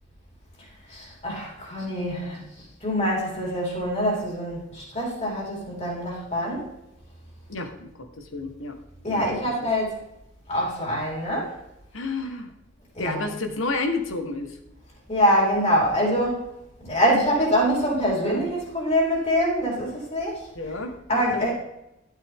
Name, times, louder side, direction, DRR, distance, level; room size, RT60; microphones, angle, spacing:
voice 1, 0.9-2.4 2.8-6.7 9.0-10.0 10.5-11.5 13.0-13.2 15.1-16.5 16.8-20.4 21.1-21.5, equal, 35° left, -3 dB, 4.5 m, -24 dB
voice 2, 7.5-7.9 8.2-8.8 9.1-9.5 11.9-12.5 13.0-14.6 20.5-21.5, left 3 dB, 85° left, 6 dB, 1.5 m, -31 dB
12.0 x 8.2 x 3.7 m, 0.86 s
head